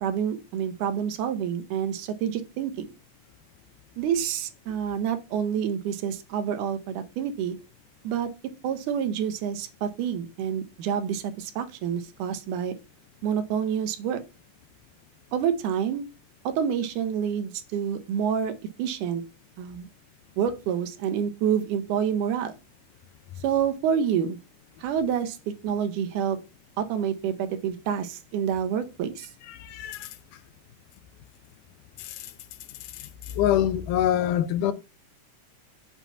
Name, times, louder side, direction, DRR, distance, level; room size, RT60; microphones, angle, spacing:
voice 1, 0.0-2.9 4.0-7.6 8.0-8.3 8.6-12.7 13.2-14.2 15.3-16.1 16.5-18.5 18.8-19.2 19.6-19.9 20.4-22.5 23.4-24.4 24.8-25.4 25.6-26.4 26.8-29.3, right 8 dB, 75° right, 2.1 m, -28 dB
voice 2, 33.4-34.7, left 11 dB, 80° left, 2.0 m, -23 dB
7.1 x 2.8 x 5.6 m
omnidirectional pair, 3.8 m